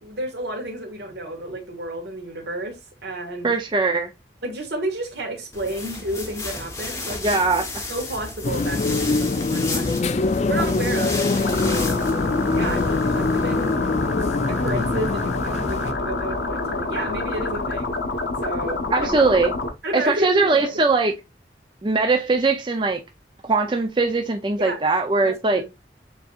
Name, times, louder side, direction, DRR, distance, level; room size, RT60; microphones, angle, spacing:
voice 1, 0.0-3.5 4.4-7.4 7.9-9.9 10.5-11.5 12.5-13.8 14.5-18.0 18.4-19.2 19.8-20.7 24.6-24.8 25.2-25.7, right 1 dB, 75° right, 1.5 m, -31 dB
voice 2, 3.4-4.1 7.2-7.7 18.9-19.5 19.9-21.1 21.8-23.0 23.4-25.6, right 3 dB, 25° right, 0.4 m, -20 dB
sound 1, 5.5-13.8, left 2 dB, 15° left, 0.8 m, -33 dB
sound 2, 8.4-15.9, left 3 dB, 40° left, 0.3 m, -24 dB
sound 3, 11.4-19.7, left 3 dB, 80° left, 0.9 m, -27 dB
6.8 x 2.7 x 2.4 m
head